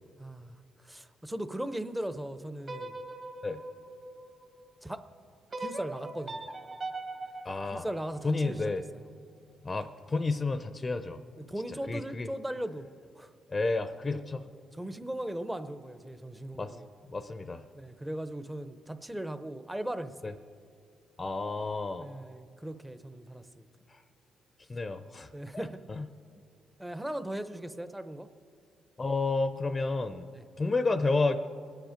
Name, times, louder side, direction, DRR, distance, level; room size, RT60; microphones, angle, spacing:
voice 1, 0.2-0.5 0.8-3.0 4.8-5.1 5.6-6.4 7.7-9.0 11.5-12.9 13.2-13.3 14.7-16.9 17.8-20.3 22.0-23.7 25.3-25.8 26.8-28.3 30.3-30.4, right 1 dB, 10° right, 11 dB, 0.7 m, -38 dB
sound 1, 2.6-4.8 5.5-8.6, right 2 dB, 40° right, 1.8 m, -41 dB
voice 2, 7.4-7.9 8.2-8.8 9.6-11.2 11.9-12.3 13.5-14.4 16.5-16.8 17.1-17.6 20.2-20.3 21.2-22.1 24.7-25.3 25.5-25.6 25.9-26.1 29.0-30.3 30.6-31.4, left 3 dB, 25° left, 11 dB, 0.6 m, -30 dB
22.5 x 9.1 x 5.1 m, 2.3 s
cardioid pair, 90°, 0 cm